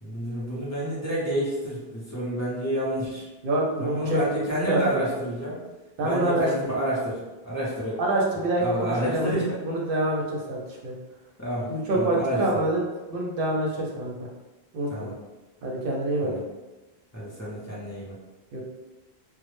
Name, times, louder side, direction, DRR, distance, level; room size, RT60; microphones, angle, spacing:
voice 1, 0.0-3.3 3.8-5.6 6.0-8.0 8.6-9.6 11.4-12.6 14.9-15.1 16.2-16.4 17.1-18.2, equal, 20° left, -8 dB, 0.5 m, -29 dB
voice 2, 3.4-4.2 4.7-5.0 6.0-6.5 8.0-9.4 9.6-10.9 11.7-12.8 13.1-14.3 14.7-15.1 15.6-16.3 18.5-18.6, right 1 dB, 65° right, -2 dB, 0.7 m, -26 dB
2.0 x 2.0 x 3.0 m, 1.1 s
omnidirectional pair, 1.0 m